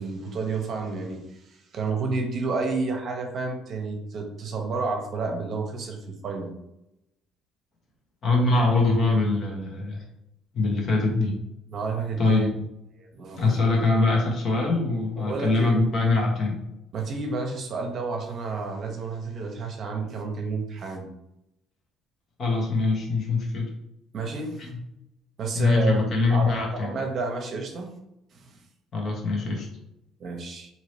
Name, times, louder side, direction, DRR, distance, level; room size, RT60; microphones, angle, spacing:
voice 1, 0.0-6.5 11.7-12.5 12.9-13.6 15.2-15.8 16.9-21.1 24.1-24.7 25.4-26.0 26.3-27.9 28.3-28.6 30.2-30.7, right 4 dB, 50° right, 2 dB, 0.8 m, -30 dB
voice 2, 8.2-10.0 10.5-11.3 12.2-12.5 13.4-16.6 22.4-23.7 25.5-26.9 28.9-29.7, left 3 dB, 50° left, 0 dB, 1.1 m, -23 dB
2.8 x 2.8 x 3.2 m, 0.85 s
cardioid pair, 95°, 0 cm